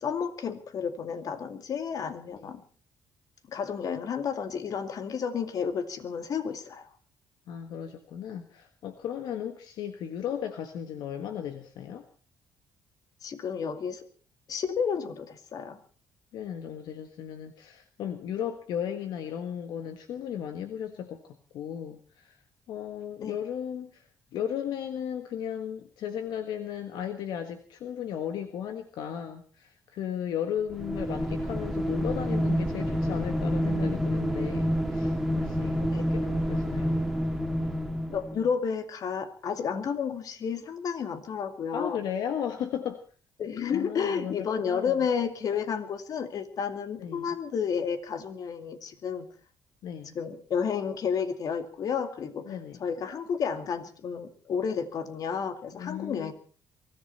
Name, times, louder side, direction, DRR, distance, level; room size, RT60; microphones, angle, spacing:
voice 1, 0.0-2.6 3.5-6.9 13.2-14.0 14.5-15.8 23.2-23.3 35.9-36.0 38.1-42.0 43.4-49.3 50.1-52.5 52.8-56.3, left 6 dB, 60° left, 8 dB, 2.4 m, -31 dB
voice 2, 7.5-12.0 16.3-22.4 22.7-24.0 24.3-37.0 41.7-43.0 43.7-44.9 47.0-47.3 49.8-50.1 52.5-52.8 55.7-56.3, left 9 dB, 75° left, 7 dB, 1.6 m, -35 dB
sound 1, 30.7-38.4, equal, ahead, 2.3 m, -28 dB
23.0 x 14.5 x 4.3 m, 0.40 s
cardioid pair, 85°, 7 cm